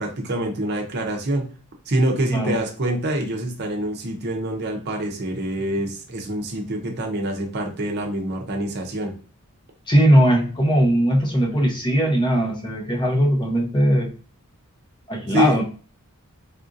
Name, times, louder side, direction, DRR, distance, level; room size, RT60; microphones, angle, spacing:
voice 1, 0.0-1.5 1.9-9.1 15.3-15.6, right 1 dB, 50° right, 1 dB, 0.6 m, -25 dB
voice 2, 9.9-14.1 15.1-15.6, equal, 20° left, 0 dB, 0.6 m, -19 dB
3.6 x 2.6 x 2.5 m, 0.38 s
head